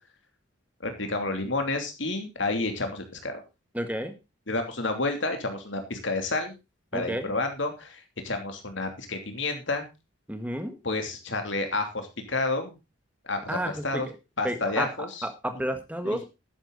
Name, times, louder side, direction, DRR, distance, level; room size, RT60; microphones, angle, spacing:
voice 1, 0.8-3.4 4.5-6.5 6.9-9.8 10.8-12.8 13.2-13.6 13.8-14.1 14.4-15.2 16.0-16.2, left 2 dB, 60° left, 6 dB, 3.0 m, -30 dB
voice 2, 3.7-4.2 6.9-7.4 10.3-10.8 13.5-14.1 14.4-16.2, equal, 5° right, 8 dB, 1.5 m, -31 dB
12.0 x 10.0 x 4.0 m, 0.27 s
head